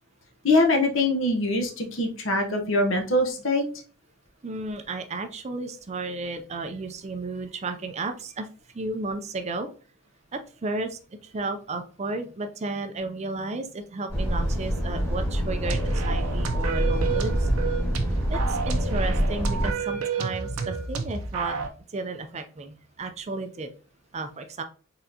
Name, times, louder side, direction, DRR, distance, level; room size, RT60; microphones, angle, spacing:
voice 1, 0.4-3.6, left 2 dB, 60° left, 4 dB, 0.9 m, -23 dB
voice 2, 4.4-8.5 8.7-9.7 10.3-17.5 18.3-21.6 21.9-23.7 24.1-24.6, right 3 dB, 30° right, 7 dB, 0.4 m, -33 dB
Truck, 14.1-19.7, equal, 15° left, 1.8 m, -26 dB
sound 1, 15.6-21.7, right 5 dB, 90° right, 0.7 m, -31 dB
4.2 x 3.7 x 2.7 m, 0.39 s
head